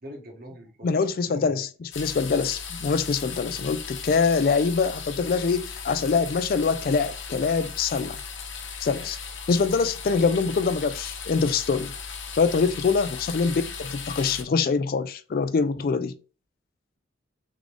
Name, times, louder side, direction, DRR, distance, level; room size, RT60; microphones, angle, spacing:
voice 1, 0.0-1.6 8.9-9.1 12.8-12.9, equal, 50° right, 1.3 m, -44 dB
voice 2, 0.8-1.7 2.0-8.2 8.8-9.2 9.5-11.9 12.3-16.1, left 5 dB, 50° left, 0.3 m, -24 dB
Bacon cooking in a cast-iron pan, 1.9-14.4, left 6 dB, 70° left, 0.8 m, -37 dB
3.7 x 3.6 x 3.3 m
head